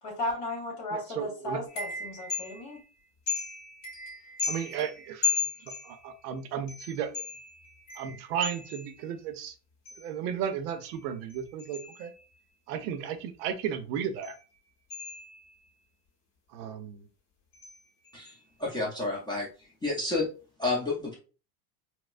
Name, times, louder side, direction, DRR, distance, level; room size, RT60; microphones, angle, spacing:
voice 1, 0.0-2.8, left 1 dB, 55° left, -2 dB, 1.6 m, -35 dB
voice 2, 0.9-1.6 4.5-5.3 5.8-7.2 8.0-9.5 10.0-12.1 12.7-14.4 16.5-17.0, right 8 dB, 85° right, 10 dB, 0.7 m, -34 dB
sound 1, 1.7-2.8 3.3-6.2 6.7-9.1 9.9-10.2 10.7-12.4 14.2-14.4 14.9-15.7 17.5-17.8 18.0-18.4, left 5 dB, 35° left, 1.6 m, -36 dB
voice 3, 18.6-19.5 19.8-20.3 20.6-21.2, left 2 dB, 10° left, -4 dB, 0.6 m, -30 dB
4.2 x 2.1 x 2.4 m, 0.34 s
supercardioid pair, 140°, 46 cm